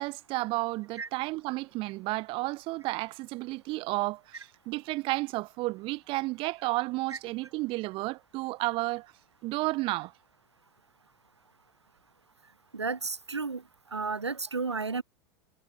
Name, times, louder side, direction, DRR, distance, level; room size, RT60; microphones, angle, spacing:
voice 1, 0.0-9.1 9.4-10.1, right 21 dB, 40° right, 0.9 m, -32 dB
voice 2, 12.7-13.6 13.9-15.0, right 4 dB, 85° right, 0.4 m, -32 dB
figure-of-eight pair, 85°, 14 cm